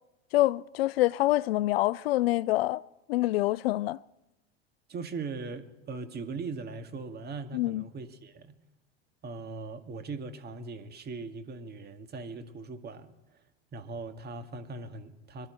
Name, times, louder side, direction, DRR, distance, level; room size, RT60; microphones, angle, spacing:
voice 1, 0.3-2.8 3.1-4.0 7.5-7.8, left 17 dB, 65° left, 0.5 m, -26 dB
voice 2, 4.9-8.6 9.2-13.4 13.7-15.5, right 4 dB, 30° right, 1.9 m, -40 dB
26.5 x 12.0 x 4.5 m
hypercardioid pair, 80°, 32 cm